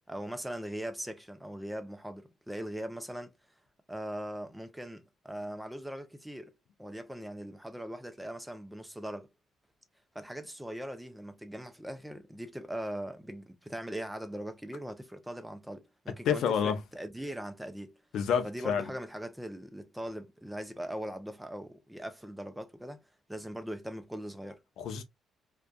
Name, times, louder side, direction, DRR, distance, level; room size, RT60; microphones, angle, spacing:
voice 1, 0.1-3.3 3.9-9.3 10.1-18.0 18.4-23.0 23.3-24.6, equal, 5° right, 0.5 m, -40 dB
voice 2, 16.2-16.8 18.1-18.9 24.8-25.0, left 7 dB, 75° left, 0.5 m, -28 dB
2.5 x 2.3 x 2.2 m
cardioid pair, 90°, 0 cm